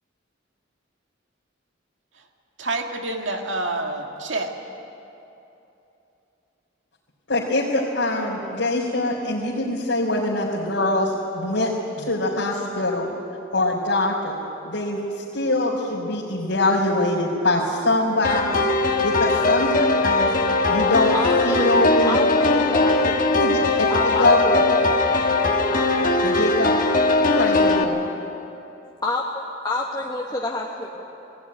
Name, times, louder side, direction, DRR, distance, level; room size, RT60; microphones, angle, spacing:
voice 1, 2.6-4.5, right 2 dB, 75° right, 3 dB, 2.0 m, -28 dB
voice 2, 7.3-11.7 12.0-13.1 13.5-14.4 14.6-18.4 19.0-20.3 20.7-21.1 21.4-22.2 23.4-24.4 26.2-26.8 27.3-28.1, left 2 dB, 80° left, -9 dB, 3.7 m, -23 dB
sound 1, 18.2-27.8, left 2 dB, 45° left, 1.3 m, -20 dB
voice 3, 18.2-18.7 19.6-19.8 21.1-21.8 22.1-23.3 23.9-24.6 26.1-26.2 29.0-29.2 29.6-31.0, left 2 dB, 20° left, -3 dB, 1.3 m, -28 dB
19.5 x 16.0 x 9.7 m, 2.9 s
head